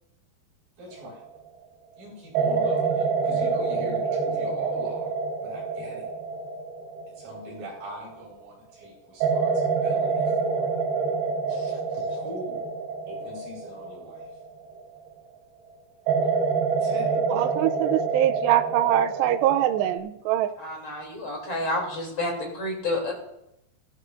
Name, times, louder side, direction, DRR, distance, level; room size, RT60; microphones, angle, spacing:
voice 1, 0.8-1.2 2.0-5.1 5.4-6.1 7.2-10.8 12.2-12.7 13.1-14.3 16.8-17.1, equal, 55° right, -4 dB, 6.8 m, -41 dB
sound 1, 1.0-1.4 2.3-8.3 9.2-15.2 16.1-20.0, right 4 dB, 70° right, 3.1 m, -27 dB
voice 2, 17.3-20.5, right 13 dB, 90° right, 11 dB, 2.8 m, -23 dB
voice 3, 20.6-23.1, left 1 dB, 35° left, -1 dB, 3.1 m, -30 dB
16.0 x 13.5 x 2.5 m, 0.81 s
omnidirectional pair, 4.8 m